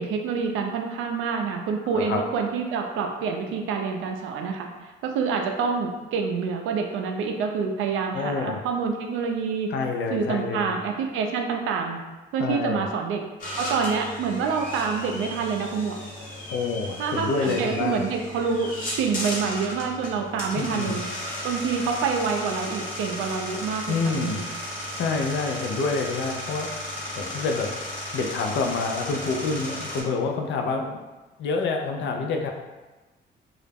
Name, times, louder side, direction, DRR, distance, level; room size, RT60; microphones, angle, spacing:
voice 1, 0.0-4.7 5.0-9.7 10.1-12.0 12.3-13.2 13.6-16.0 17.0-18.7 19.0-21.0 21.4-24.4, right 5 dB, 85° right, 3 dB, 0.4 m, -27 dB
voice 2, 8.1-8.6 9.7-10.8 12.4-12.9 16.5-18.0 20.5-21.0 23.9-24.4 24.9-26.7 27.2-27.7 28.1-31.0 31.4-32.5, left 4 dB, 70° left, 3 dB, 0.4 m, -27 dB
sound 1, 13.4-30.0, left 1 dB, 40° left, 0.9 m, -35 dB
2.3 x 2.0 x 3.3 m, 1.2 s
cardioid pair, 90°, 20 cm